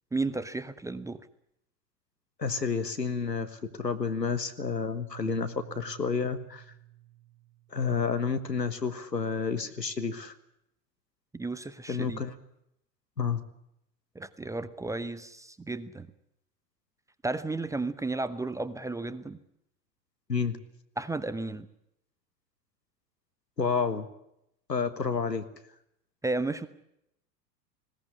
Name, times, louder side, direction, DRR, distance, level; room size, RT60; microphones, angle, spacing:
voice 1, 0.1-1.3 11.3-12.2 14.1-16.1 17.2-19.4 21.0-21.7 26.2-26.7, right 3 dB, 5° right, 15 dB, 0.8 m, -33 dB
voice 2, 2.4-6.7 7.7-10.3 11.9-12.3 13.2-13.4 20.3-20.6 23.6-24.1 24.7-25.4, left 5 dB, 90° left, 9 dB, 1.6 m, -30 dB
Keyboard (musical), 5.1-8.2, right 14 dB, 60° right, 4.4 m, -50 dB
20.0 x 18.0 x 9.7 m, 0.80 s
figure-of-eight pair, 85°, 48 cm